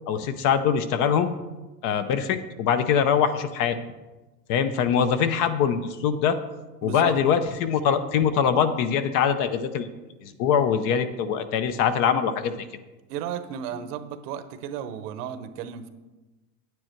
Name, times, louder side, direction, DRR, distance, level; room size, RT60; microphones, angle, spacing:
voice 1, 0.1-1.3 1.8-3.8 4.5-6.4 6.8-9.9 10.2-12.6, left 7 dB, 40° left, 11 dB, 0.6 m, -23 dB
voice 2, 6.8-7.2 13.1-15.9, right 8 dB, 70° right, 11 dB, 1.0 m, -34 dB
9.3 x 9.1 x 4.5 m, 1.1 s
supercardioid pair, 145°, 49 cm